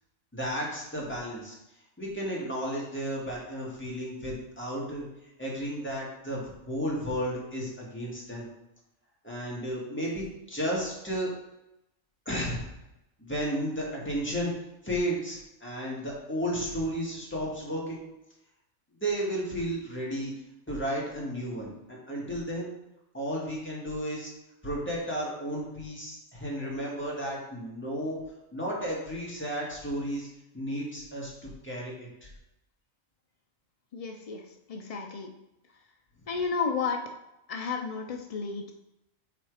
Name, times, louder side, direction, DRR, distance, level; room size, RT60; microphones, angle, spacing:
voice 1, 0.3-1.6 2.0-5.0 5.4-8.5 9.2-11.3 12.3-12.7 13.2-14.5 14.8-18.0 19.0-20.3 20.7-22.7 23.1-24.3 24.6-28.2 28.5-30.3 30.5-31.3 31.6-31.9, equal, 10° left, -5 dB, 1.9 m, -33 dB
voice 2, 33.9-34.4 34.7-35.3 36.3-37.0 37.5-38.7, left 5 dB, 75° left, 3 dB, 0.3 m, -32 dB
5.8 x 4.3 x 4.8 m, 0.91 s
omnidirectional pair, 1.4 m